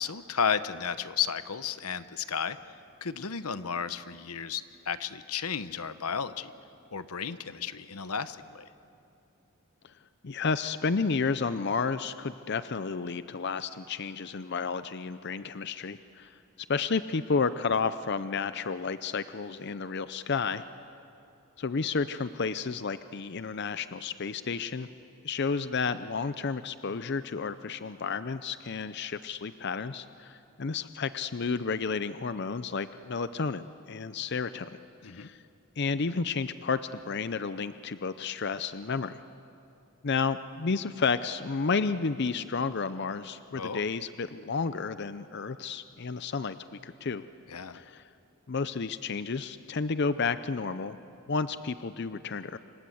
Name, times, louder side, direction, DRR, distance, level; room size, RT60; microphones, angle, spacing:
voice 1, 0.0-2.6 3.0-6.5 6.9-8.7 35.0-35.3 43.5-43.9 47.5-47.8, left 7 dB, 85° left, 12 dB, 1.0 m, -33 dB
voice 2, 10.2-16.3 16.7-20.6 21.6-24.9 25.2-33.6 33.9-34.7 35.0-35.4 35.8-36.8 37.0-39.2 40.0-47.2 47.7-48.0 48.5-51.0 51.3-52.6, left 5 dB, 50° left, 12 dB, 0.6 m, -31 dB
28.5 x 25.5 x 7.9 m, 2.7 s
head